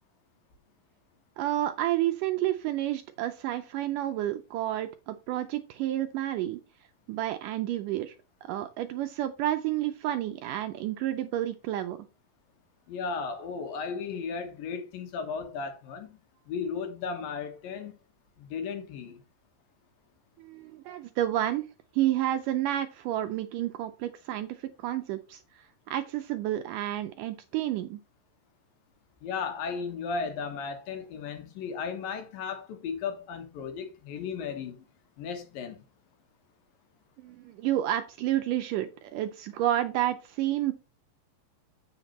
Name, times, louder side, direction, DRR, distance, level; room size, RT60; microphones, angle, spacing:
voice 1, 1.4-6.6 7.1-8.2 8.4-12.0 20.4-21.6 21.9-28.0 37.2-40.7, right 13 dB, 80° right, 1.9 m, -30 dB
voice 2, 12.9-16.2 16.5-18.0 18.4-19.2 29.2-34.8 35.2-35.8, left 5 dB, 75° left, 3.0 m, -35 dB
8.1 x 5.9 x 4.1 m
omnidirectional pair, 4.2 m